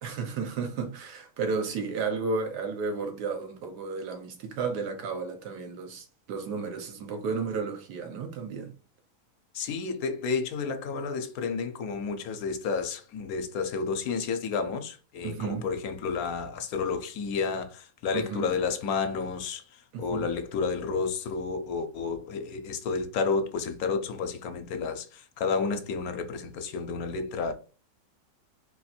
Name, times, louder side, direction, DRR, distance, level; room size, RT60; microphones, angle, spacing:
voice 1, 0.0-8.7 15.2-15.7 18.1-18.5 19.9-20.3, right 4 dB, 90° right, 1.5 m, -33 dB
voice 2, 9.5-19.6 20.0-27.5, left 5 dB, 70° left, 1.1 m, -31 dB
4.2 x 2.5 x 4.2 m
omnidirectional pair, 1.7 m